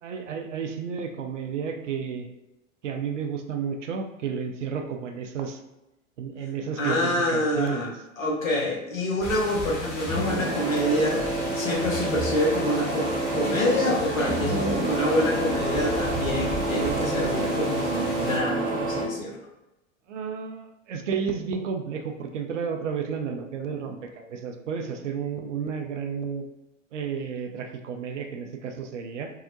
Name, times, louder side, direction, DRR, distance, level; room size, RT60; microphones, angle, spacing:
voice 1, 0.0-2.3 2.8-5.6 6.2-7.9 20.1-26.5 26.9-29.3, right 6 dB, 65° right, 5 dB, 0.5 m, -32 dB
voice 2, 6.8-7.9 8.2-19.4, left 1 dB, 80° left, -3 dB, 0.8 m, -27 dB
sound 1, 9.2-18.4, equal, 25° left, 0.6 m, -35 dB
Printer, 10.1-19.1, right 2 dB, 20° right, 0.6 m, -28 dB
2.7 x 2.0 x 2.6 m, 0.96 s
figure-of-eight pair, 85°, 39 cm